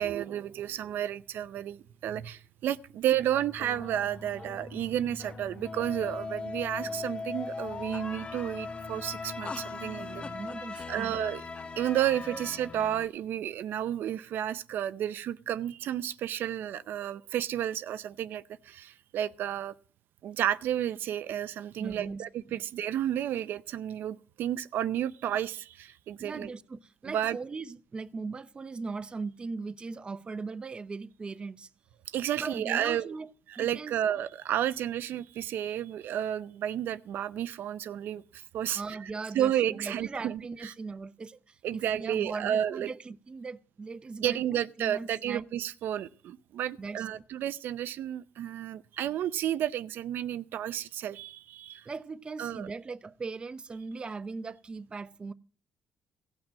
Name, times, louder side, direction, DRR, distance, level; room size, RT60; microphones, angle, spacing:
voice 1, 0.0-10.2 10.9-11.4 11.8-19.7 20.2-26.5 27.1-27.4 32.1-33.1 33.5-38.8 39.3-40.7 41.6-42.9 44.2-51.9 52.4-52.7, right 11 dB, 80° right, 0.5 m, -32 dB
sound 1, 3.1-10.5, left 2 dB, 50° left, 1.9 m, -47 dB
sound 2, 3.5-13.1, left 4 dB, 30° left, 0.8 m, -40 dB
voice 2, 10.0-11.1 12.3-12.4 21.8-22.6 26.2-31.7 32.4-33.3 33.6-34.0 38.7-45.5 46.8-47.2 51.9-55.3, right 4 dB, 30° right, 0.6 m, -39 dB
16.0 x 6.1 x 7.5 m
cardioid pair, 120°, 3 cm